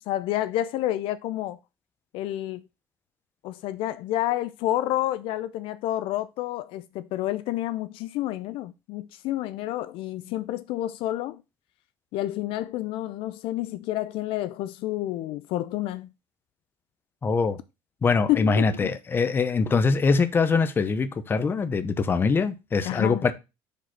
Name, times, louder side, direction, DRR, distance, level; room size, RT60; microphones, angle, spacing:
voice 1, 0.1-1.6 2.1-2.6 3.4-11.4 12.1-16.1 18.3-18.9 22.8-23.2, left 14 dB, 65° left, 0.4 m, -29 dB
voice 2, 17.2-17.6 18.0-23.3, left 4 dB, 20° left, 0.7 m, -23 dB
5.1 x 4.0 x 5.8 m
cardioid pair, 130°, 10 cm